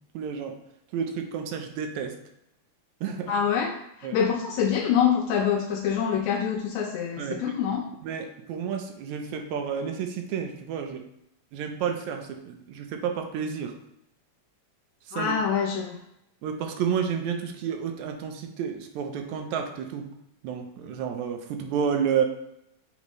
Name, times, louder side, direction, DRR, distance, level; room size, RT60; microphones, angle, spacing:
voice 1, 0.2-0.5 0.9-2.1 3.0-3.3 4.0-4.1 7.2-7.4 8.1-11.0 11.5-13.7 15.2-15.3 16.4-20.1 20.4-22.2, right 7 dB, 80° right, 5 dB, 2.0 m, -30 dB
voice 2, 3.3-7.8 15.1-16.0, left 7 dB, 80° left, 0 dB, 2.0 m, -25 dB
7.4 x 4.3 x 3.1 m, 0.80 s
omnidirectional pair, 3.3 m